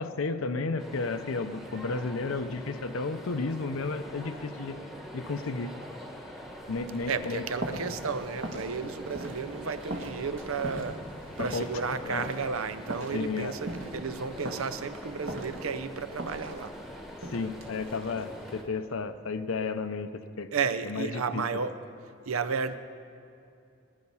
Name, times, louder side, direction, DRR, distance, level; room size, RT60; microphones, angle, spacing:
voice 1, 0.0-4.8 5.1-5.7 6.7-7.4 11.4-11.7 12.0-12.3 13.1-13.5 17.3-20.5 20.8-21.4, left 4 dB, 80° left, 8 dB, 0.6 m, -32 dB
sound 1, 0.8-18.6, equal, ahead, 1.1 m, -44 dB
sound 2, 6.4-18.7, right 1 dB, 65° right, 1.7 m, -42 dB
voice 2, 7.1-11.0 11.4-16.7 20.5-21.8 22.3-22.8, right 5 dB, 85° right, 13 dB, 0.7 m, -33 dB
20.0 x 10.5 x 5.6 m, 2.6 s
head